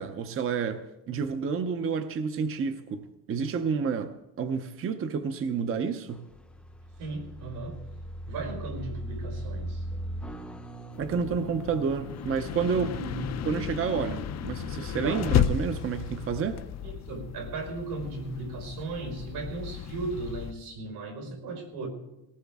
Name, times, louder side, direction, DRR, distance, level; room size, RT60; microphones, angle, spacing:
voice 1, 0.0-6.2 11.0-13.0 13.4-16.6, right 6 dB, 35° right, 9 dB, 0.6 m, -30 dB
sound 1, 6.1-15.5, equal, 5° left, 0.6 m, -40 dB
voice 2, 7.0-7.8 8.3-9.8 12.6-13.6 15.0-15.2 16.8-21.9, right 3 dB, 80° right, 3 dB, 5.0 m, -36 dB
sound 2, 10.9-20.5, left 10 dB, 45° left, 0.5 m, -33 dB
19.0 x 18.5 x 3.6 m, 0.95 s
cardioid pair, 180°, 38 cm